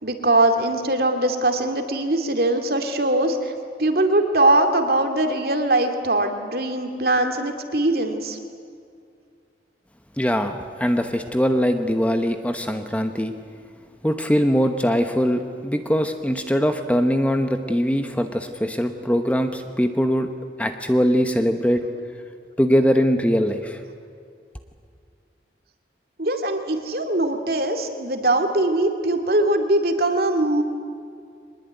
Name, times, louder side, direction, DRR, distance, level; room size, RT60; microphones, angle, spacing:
voice 1, 0.0-3.5 3.8-8.4 26.2-30.6, right 2 dB, 55° right, 5 dB, 2.4 m, -21 dB
voice 2, 10.2-13.3 14.0-20.3 20.6-21.8 22.6-23.8, equal, 10° left, 7 dB, 1.0 m, -21 dB
24.0 x 20.0 x 9.4 m, 2.3 s
head